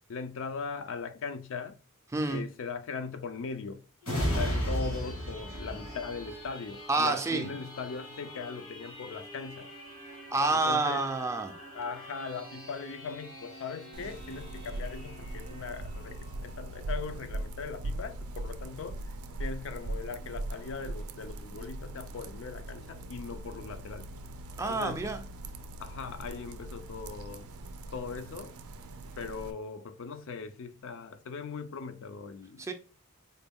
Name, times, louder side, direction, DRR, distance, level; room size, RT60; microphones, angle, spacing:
voice 1, 0.1-1.8 2.2-3.8 4.3-9.7 10.5-11.2 11.7-19.0 19.4-24.1 24.7-25.2 25.8-27.5 27.9-28.6 29.2-32.6, left 5 dB, 60° left, 0.4 m, -39 dB
voice 2, 2.1-2.4 6.9-7.5 10.3-11.5 24.6-25.2 32.6-32.7, right 3 dB, 15° right, 0.4 m, -28 dB
sound 1, 4.0-17.3 17.8-17.9, equal, 80° left, 1.8 m, -39 dB
sound 2, 13.9-29.5, right 1 dB, 80° right, 0.4 m, -40 dB
4.1 x 2.2 x 3.5 m
head